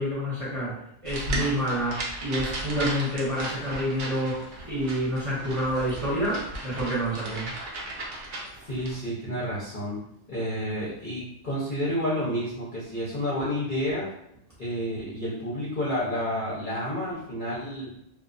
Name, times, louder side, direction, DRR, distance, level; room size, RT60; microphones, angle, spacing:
voice 1, 0.0-7.5, equal, 30° right, -9 dB, 0.7 m, -28 dB
sound 1, 1.0-8.9, right 1 dB, 70° right, 0.5 m, -36 dB
voice 2, 8.7-10.0 10.3-14.1 14.6-17.9, equal, 50° left, -9 dB, 0.6 m, -30 dB
2.3 x 2.1 x 2.4 m, 0.77 s
omnidirectional pair, 1.4 m